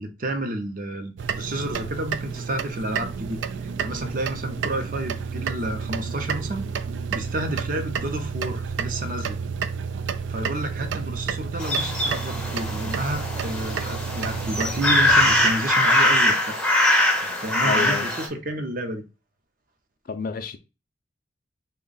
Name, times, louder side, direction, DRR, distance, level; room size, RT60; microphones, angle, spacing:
voice 1, 0.0-6.7 7.1-9.4 10.3-16.5 17.2-19.0, right 1 dB, 45° right, 0.6 m, -30 dB
sound 1, 1.2-15.5, right 6 dB, 85° right, 0.3 m, -30 dB
sound 2, 11.6-18.3, left 1 dB, 5° left, 0.6 m, -22 dB
voice 2, 17.6-18.1 20.1-20.6, left 4 dB, 50° left, 0.4 m, -29 dB
3.4 x 2.2 x 3.8 m
head